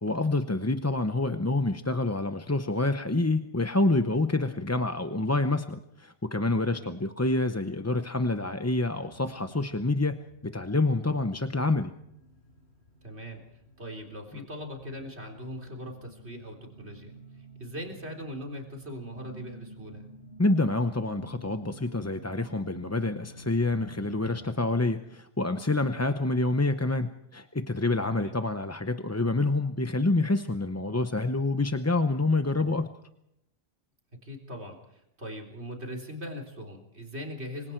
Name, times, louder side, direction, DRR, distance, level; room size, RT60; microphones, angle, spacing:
voice 1, 0.0-11.9 14.3-14.4 20.4-32.9, left 2 dB, 15° left, 8 dB, 0.7 m, -27 dB
sound 1, 8.9-24.5, right 1 dB, 80° left, 7.1 m, -51 dB
voice 2, 13.0-13.4 13.8-17.1 17.6-20.0 28.1-28.3 34.2-37.7, equal, 80° right, 2 dB, 4.1 m, -40 dB
28.5 x 24.5 x 4.6 m, 0.80 s
omnidirectional pair, 1.1 m